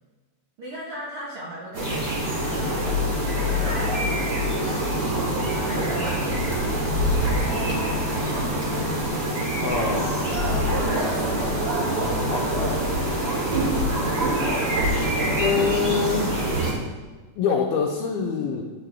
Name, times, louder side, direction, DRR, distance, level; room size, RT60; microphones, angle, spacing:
voice 1, 0.6-4.9 5.6-6.5 6.8-8.6 10.6-11.5 11.8-13.4, right 1 dB, 80° right, -6 dB, 1.2 m, -38 dB
sound 1, 1.7-16.7, equal, 30° right, 2.8 m, -24 dB
voice 2, 9.6-10.2 12.3-12.4 13.9-14.0 15.4-16.3 17.4-18.6, left 6 dB, 80° left, -1 dB, 2.6 m, -25 dB
11.0 x 8.6 x 3.5 m, 1.3 s
omnidirectional pair, 4.7 m